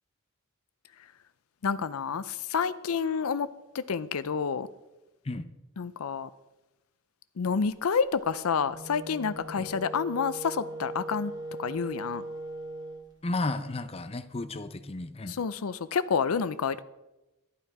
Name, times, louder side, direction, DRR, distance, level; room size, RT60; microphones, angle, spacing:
voice 1, 1.6-3.5 3.7-4.7 5.8-6.3 7.4-11.3 11.6-12.2 15.3-16.8, left 6 dB, 90° left, 0.5 m, -29 dB
Wind instrument woodwind instrument, 8.6-13.1, right 1 dB, 20° right, 1.6 m, -40 dB
voice 2, 13.2-15.4, left 2 dB, 30° left, 0.6 m, -33 dB
12.0 x 11.5 x 4.8 m
head